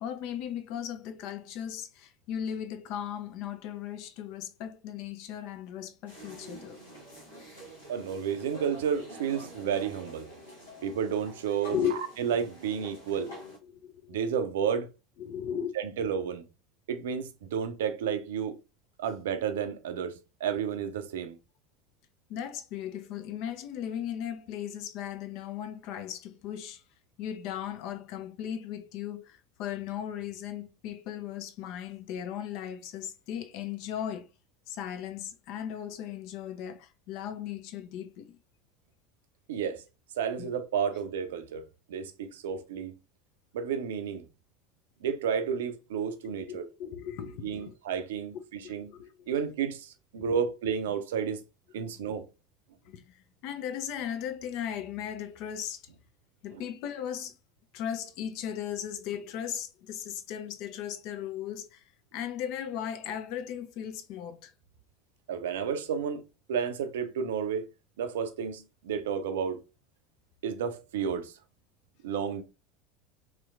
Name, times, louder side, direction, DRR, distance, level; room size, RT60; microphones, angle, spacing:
voice 1, 0.0-6.8 11.7-12.0 13.3-14.2 15.2-15.7 22.3-26.8 27.2-34.3 34.7-38.4 40.4-40.5 46.5-47.7 48.6-49.3 50.2-50.3 52.9-53.0 53.4-55.8 56.4-57.3 57.7-61.8 62.1-64.5, left 9 dB, 50° left, 0.4 m, -37 dB
sound 1, 6.1-13.6, equal, 80° left, 1.2 m, -48 dB
voice 2, 7.9-10.3 10.8-11.8 12.2-13.3 14.1-14.9 15.7-16.4 16.9-18.6 19.0-21.4 39.5-39.8 40.2-41.6 41.9-42.9 43.5-44.2 45.0-46.7 47.4-48.9 49.3-51.4 51.7-52.3 56.5-56.6 65.3-66.2 66.5-67.6 68.0-69.6 70.4-71.3 72.0-72.4, right 7 dB, 65° right, 0.4 m, -31 dB
3.1 x 2.9 x 2.4 m
figure-of-eight pair, 70°, 0 cm